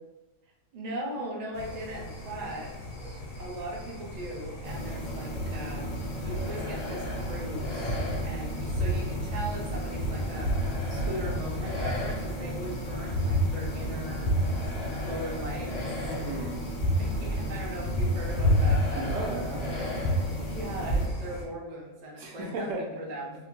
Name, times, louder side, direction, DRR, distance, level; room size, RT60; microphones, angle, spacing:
voice 1, 0.7-2.7 3.0-14.3 15.0-15.9 17.0-19.1 20.4-23.5, right 1 dB, 50° right, -3 dB, 0.5 m, -39 dB
sound 1, 1.5-21.5, left 1 dB, 70° left, 1.0 m, -42 dB
sound 2, 4.6-21.0, equal, 40° left, 0.6 m, -30 dB
voice 2, 16.0-16.6 18.9-20.1 20.3-20.5 22.2-22.8, right 2 dB, 80° right, 0 dB, 1.0 m, -36 dB
2.7 x 2.0 x 2.9 m, 1.0 s
omnidirectional pair, 1.4 m